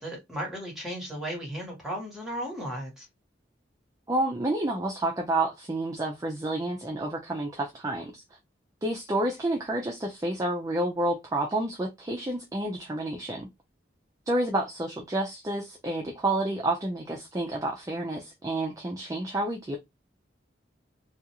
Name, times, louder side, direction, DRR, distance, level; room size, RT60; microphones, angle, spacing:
voice 1, 0.0-3.0, equal, ahead, 1.2 m, -35 dB
voice 2, 4.1-8.2 8.8-13.5 14.3-19.8, right 1 dB, 20° right, 0.3 m, -29 dB
2.4 x 2.3 x 2.7 m
head